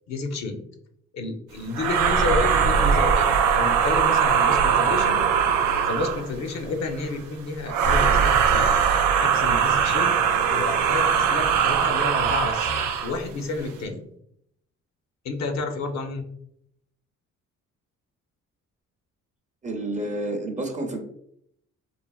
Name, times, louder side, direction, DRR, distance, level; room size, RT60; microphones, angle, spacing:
voice 1, 0.1-0.6 1.1-3.3 3.5-5.2 5.8-8.7 9.2-10.1 10.5-12.7 13.0-14.0 15.2-16.3, left 3 dB, 60° left, 4 dB, 0.6 m, -30 dB
sound 1, 1.7-6.3 7.7-13.1, right 7 dB, 90° right, 0.5 m, -21 dB
voice 2, 19.6-21.0, right 1 dB, 25° right, 2 dB, 0.5 m, -29 dB
3.2 x 2.0 x 2.3 m, 0.71 s
cardioid pair, 90°, 30 cm